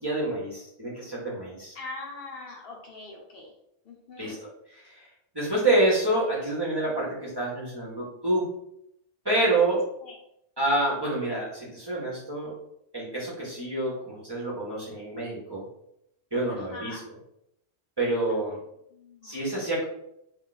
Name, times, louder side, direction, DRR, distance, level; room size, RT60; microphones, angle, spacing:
voice 1, 0.0-1.7 4.2-5.0 5.3-8.4 9.2-9.9 10.6-12.5 12.9-15.6 16.3-17.0 18.0-18.6 19.2-19.8, right 2 dB, 25° right, -6 dB, 0.7 m, -27 dB
voice 2, 1.7-3.5 3.8-4.4 10.0-10.2 16.5-17.0 18.9-19.4, left 3 dB, 65° left, 0 dB, 0.8 m, -42 dB
2.4 x 2.4 x 3.8 m, 0.77 s
omnidirectional pair, 1.1 m